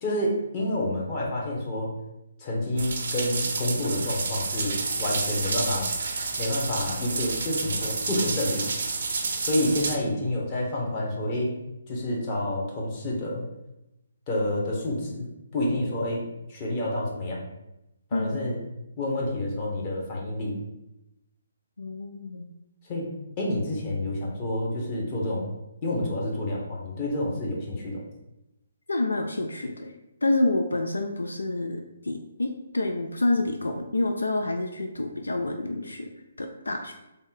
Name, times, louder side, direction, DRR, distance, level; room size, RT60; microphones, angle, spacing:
voice 1, 0.0-1.9 2.4-5.9 6.4-8.7 9.4-11.5 11.9-13.4 14.3-15.3 15.5-17.4 18.1-18.6 19.0-20.5 22.9-23.1 23.4-25.5 25.8-28.0, left 1 dB, 30° left, -3 dB, 1.0 m, -28 dB
sound 1, 2.8-10.0, right 4 dB, 55° right, 0.5 m, -30 dB
voice 2, 18.1-18.5 21.8-22.5 28.9-29.9 30.2-36.1 36.4-36.9, left 2 dB, 80° left, 4 dB, 0.3 m, -28 dB
3.5 x 2.2 x 4.0 m, 0.91 s
figure-of-eight pair, 140°, 0 cm